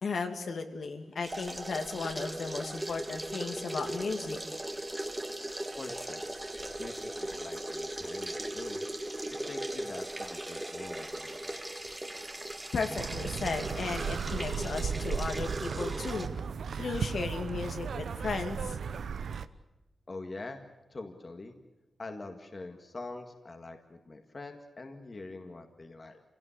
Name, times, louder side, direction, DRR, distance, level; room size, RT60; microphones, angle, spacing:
voice 1, 0.0-4.4 12.7-16.3 16.8-18.8, left 4 dB, 65° left, 5 dB, 2.4 m, -35 dB
sound 1, 1.2-16.3, right 1 dB, 10° right, 1.8 m, -38 dB
voice 2, 5.8-6.3 6.8-8.8 9.3-11.6 20.1-20.6 20.9-21.5 22.0-26.2, left 2 dB, 35° left, 5 dB, 1.9 m, -44 dB
sound 2, 13.0-19.5, right 6 dB, 85° right, 0.9 m, -35 dB
28.5 x 17.5 x 8.3 m, 1.0 s
wide cardioid pair, 165°, 0 cm